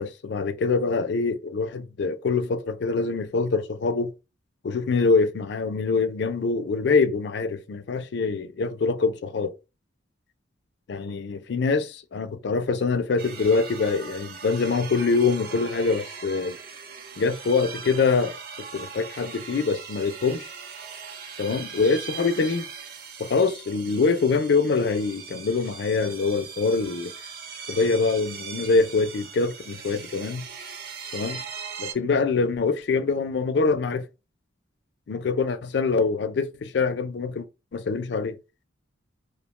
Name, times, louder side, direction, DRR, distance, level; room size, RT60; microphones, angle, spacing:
voice 1, 0.0-4.1 4.6-9.6 10.9-16.6 17.2-18.4 18.7-20.5 21.4-22.7 23.2-27.1 27.7-30.4 31.1-31.4 31.8-34.0 35.1-37.5 37.7-38.4, left 4 dB, 60° left, 0.4 m, -24 dB
sound 1, 13.2-31.9, right 6 dB, 50° right, 0.4 m, -40 dB
2.7 x 2.1 x 2.9 m
head